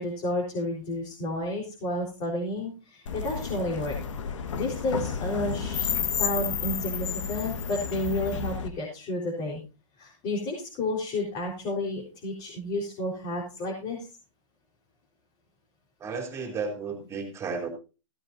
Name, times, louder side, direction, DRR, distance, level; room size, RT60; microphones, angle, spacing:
voice 1, 0.0-3.9 4.6-9.6 10.0-14.1, left 1 dB, 30° left, -3 dB, 4.3 m, -31 dB
sound 1, 3.1-8.7, left 7 dB, 70° left, 1.7 m, -31 dB
voice 2, 16.0-17.7, right 4 dB, 15° right, 3 dB, 3.2 m, -33 dB
16.0 x 12.5 x 2.7 m, 0.31 s
hypercardioid pair, 145°, 16 cm